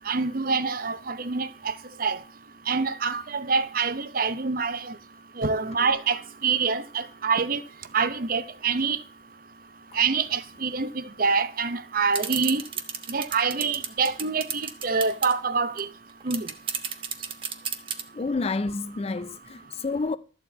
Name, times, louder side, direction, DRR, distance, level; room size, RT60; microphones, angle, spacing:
voice 1, 0.1-1.7 2.0-2.2 2.7-4.9 5.4-7.6 7.9-9.0 9.9-12.6 13.1-15.9 16.2-16.5, right 5 dB, 50° right, 0.8 m, -26 dB
sound 1, 12.1-15.3 15.8-15.9 16.1-18.0, right 7 dB, 30° right, 1.1 m, -31 dB
voice 2, 18.1-20.2, left 3 dB, 35° left, 0.4 m, -29 dB
13.0 x 4.4 x 8.3 m
head